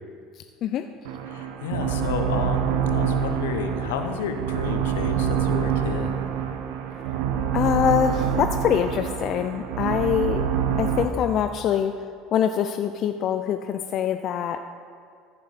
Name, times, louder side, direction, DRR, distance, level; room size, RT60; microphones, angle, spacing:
sound 1, 1.0-11.0, right 8 dB, 70° right, 0.7 m, -26 dB
voice 1, 1.3-6.1, left 6 dB, 75° left, 6 dB, 0.7 m, -31 dB
voice 2, 7.5-10.5 10.8-11.9 12.3-14.6, left 9 dB, 55° left, 8 dB, 0.4 m, -24 dB
14.5 x 7.2 x 4.1 m, 2.2 s
hypercardioid pair, 70°, 0 cm